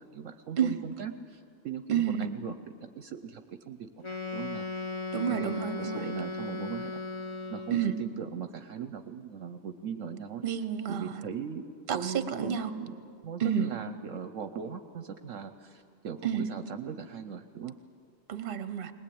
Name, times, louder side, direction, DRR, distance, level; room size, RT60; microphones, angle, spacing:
voice 1, 0.0-2.5 2.8-4.7 5.3-7.0 7.5-10.4 10.9-11.6 11.9-12.9 13.2-17.7, right 7 dB, 65° right, 9 dB, 1.0 m, -39 dB
voice 2, 1.9-2.3 5.1-6.0 7.7-7.9 10.4-11.1 11.9-12.7 13.4-13.7 16.2-16.5 18.3-18.9, right 8 dB, 45° right, 11 dB, 1.0 m, -30 dB
Wind instrument woodwind instrument, 4.0-8.1, left 3 dB, 25° left, 1.0 m, -37 dB
20.5 x 20.5 x 8.6 m, 2.3 s
omnidirectional pair, 1.5 m